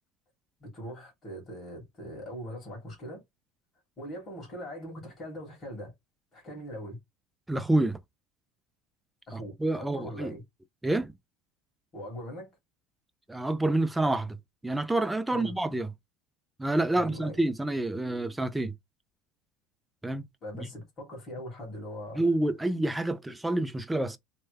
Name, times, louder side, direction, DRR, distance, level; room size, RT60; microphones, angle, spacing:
voice 1, 0.6-3.2 4.0-5.9 6.3-7.0 9.3-10.4 11.9-12.5 15.3-15.5 16.9-17.4 20.4-22.2, equal, 20° left, 1.8 m, -41 dB
voice 2, 7.5-8.0 9.3-10.4 10.8-11.1 13.3-14.4 14.6-15.9 16.6-18.7 20.0-20.3 20.6-20.7 22.1-24.2, right 2 dB, 5° right, 0.3 m, -28 dB
3.3 x 2.1 x 3.1 m
cardioid pair, 165°, 0 cm